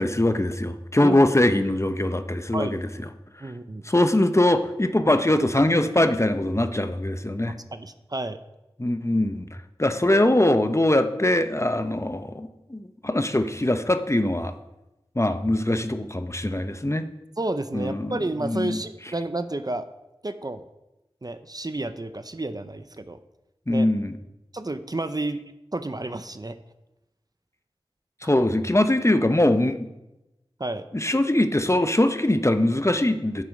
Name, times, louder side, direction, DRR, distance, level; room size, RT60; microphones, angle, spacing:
voice 1, 0.0-2.8 3.4-3.5 3.8-7.5 8.8-9.5 9.8-14.5 15.2-17.1 17.7-18.8 23.7-24.2 28.2-29.9 30.9-33.4, left 1 dB, 30° left, 9 dB, 0.7 m, -22 dB
voice 2, 3.4-3.8 7.7-8.4 9.9-10.0 17.4-19.9 20.2-20.6 21.2-23.2 23.7-23.9 24.5-25.4 25.7-26.6 28.2-28.3 30.6-30.8, right 2 dB, 40° right, 10 dB, 0.6 m, -30 dB
9.7 x 7.5 x 5.3 m, 0.95 s
wide cardioid pair, 40°, 10 cm